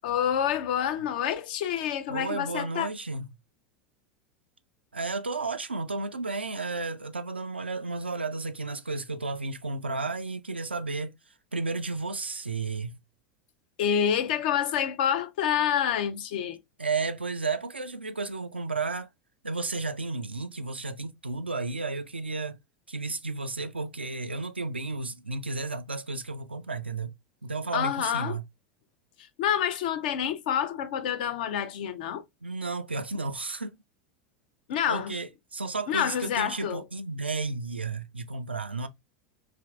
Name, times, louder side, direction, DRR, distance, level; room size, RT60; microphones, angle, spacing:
voice 1, 0.0-2.9 13.8-16.6 27.7-28.4 29.4-32.2 34.7-35.2 35.9-36.8, left 9 dB, 55° left, 0.5 m, -27 dB
voice 2, 2.1-3.3 4.9-11.1 11.5-13.0 16.8-19.1 19.4-22.6 22.9-27.1 27.4-28.4 32.4-33.8 34.9-38.9, right 3 dB, 85° right, 0.3 m, -33 dB
3.3 x 2.6 x 2.3 m
figure-of-eight pair, 85°, 6 cm